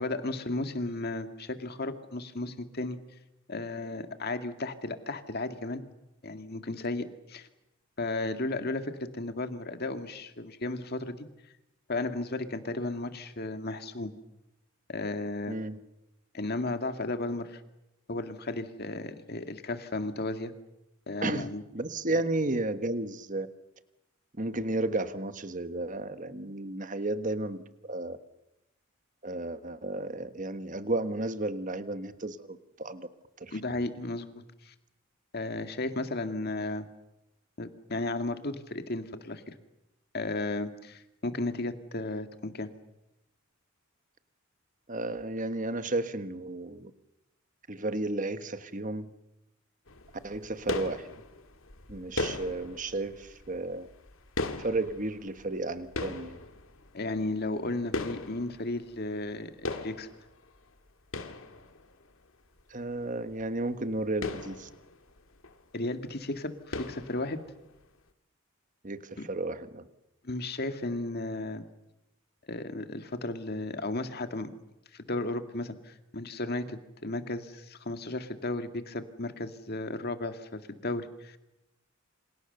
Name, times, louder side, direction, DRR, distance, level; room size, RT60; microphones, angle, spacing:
voice 1, 0.0-3.0 3.5-5.8 6.2-7.5 8.0-11.3 11.9-14.1 14.9-15.6 16.3-17.6 18.1-20.5 21.1-21.6 22.1-22.2 33.5-34.7 35.3-36.8 37.6-39.6 40.1-42.7 52.2-52.3 56.9-60.1 65.7-67.4 70.2-71.6 72.5-74.5 74.9-81.4, left 2 dB, 50° left, 8 dB, 2.0 m, -34 dB
voice 2, 15.5-15.8 21.2-23.5 24.4-27.6 27.8-28.2 29.2-33.1 33.4-33.8 44.9-46.9 47.7-49.1 50.2-51.1 51.9-53.9 54.6-56.4 62.7-64.7 68.8-69.9, right 2 dB, 40° right, 11 dB, 1.4 m, -33 dB
sound 1, 49.9-59.4 59.7-62.1 62.6-62.7 63.0-63.1 63.3-63.5 63.9-65.8 66.0-66.3 66.7-67.7, left 2 dB, 70° left, 2.1 m, -38 dB
28.5 x 26.5 x 6.8 m, 0.91 s
head